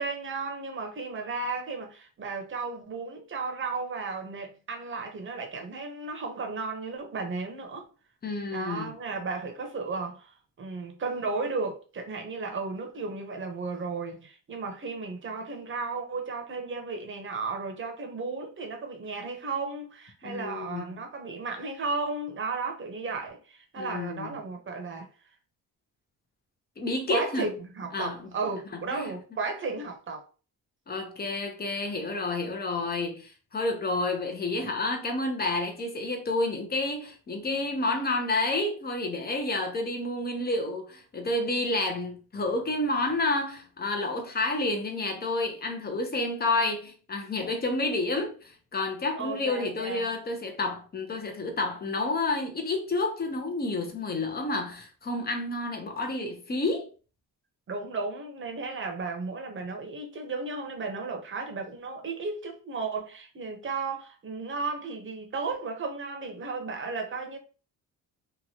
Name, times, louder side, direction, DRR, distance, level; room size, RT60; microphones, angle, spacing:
voice 1, 0.0-7.8 8.5-25.1 27.1-30.3 49.2-50.1 57.7-67.4, right 4 dB, 35° right, 0.9 m, -34 dB
voice 2, 8.2-8.9 20.2-20.8 23.8-24.4 26.8-27.5 27.9-28.3 28.7-29.1 30.9-56.9, left 2 dB, 30° left, 0.7 m, -30 dB
3.0 x 2.4 x 2.8 m
cardioid pair, 105°, 35 cm